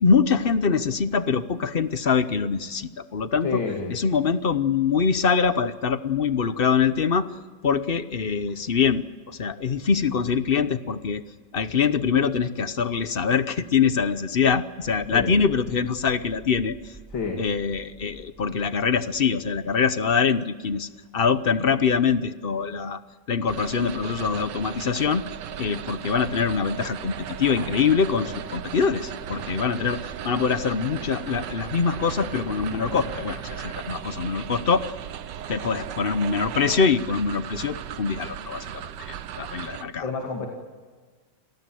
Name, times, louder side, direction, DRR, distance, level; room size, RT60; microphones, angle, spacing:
voice 1, 0.0-3.6 3.9-7.3 7.6-11.2 11.5-17.0 17.4-23.0 23.3-25.3 25.6-34.9 35.5-40.0, left 6 dB, 45° left, 13 dB, 0.7 m, -24 dB
voice 2, 3.4-3.9 15.1-15.3 17.1-17.4 40.0-40.5, left 4 dB, 85° left, 2 dB, 3.2 m, -28 dB
sound 1, 14.8-19.8, right 1 dB, 30° right, 6.3 m, -49 dB
sound 2, 23.5-39.8, right 9 dB, 70° right, 1.5 m, -36 dB
sound 3, 27.0-35.0, equal, 10° left, 3.9 m, -44 dB
28.0 x 19.5 x 7.8 m, 1.4 s
omnidirectional pair, 2.0 m